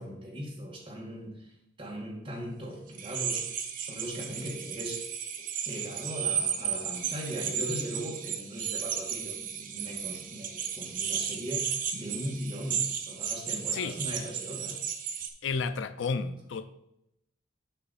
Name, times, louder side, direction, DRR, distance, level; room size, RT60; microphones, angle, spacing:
voice 1, 0.0-5.1 5.6-14.8, equal, 25° right, -1 dB, 1.6 m, -39 dB
sound 1, 2.9-15.3, right 8 dB, 45° right, 0.7 m, -34 dB
voice 2, 15.4-16.7, left 4 dB, 75° left, 12 dB, 0.4 m, -31 dB
8.4 x 5.7 x 4.1 m, 0.83 s
head